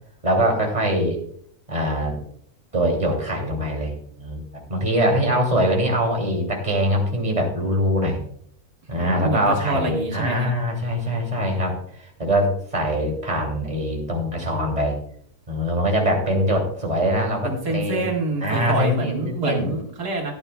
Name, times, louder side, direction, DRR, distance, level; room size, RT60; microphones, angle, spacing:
voice 1, 0.2-1.2 1.7-2.2 2.7-4.4 4.7-8.2 8.9-15.0 15.5-18.1 18.4-19.7, equal, 25° right, 0 dB, 2.8 m, -23 dB
voice 2, 9.0-10.5 17.4-20.3, right 2 dB, 85° right, 0 dB, 2.5 m, -26 dB
16.0 x 10.0 x 2.3 m, 0.62 s
omnidirectional pair, 1.6 m